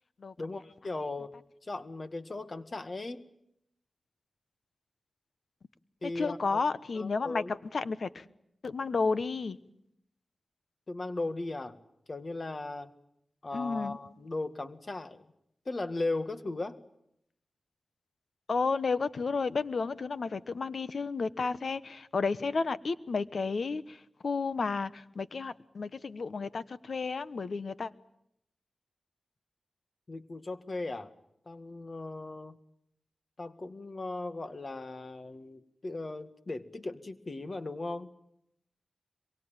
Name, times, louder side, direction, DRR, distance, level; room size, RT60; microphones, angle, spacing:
voice 1, 0.4-1.3 1.6-3.2 6.0-6.6 7.0-7.5 10.9-11.8 12.1-12.9 13.4-15.2 15.7-16.8 30.1-31.1 31.5-32.6 33.4-38.1, left 2 dB, 50° left, 9 dB, 1.9 m, -37 dB
voice 2, 6.0-8.2 8.6-9.6 13.5-14.0 18.5-27.9, left 4 dB, 70° left, 14 dB, 1.1 m, -32 dB
25.5 x 23.5 x 9.0 m, 0.78 s
cardioid pair, 45°, 0 cm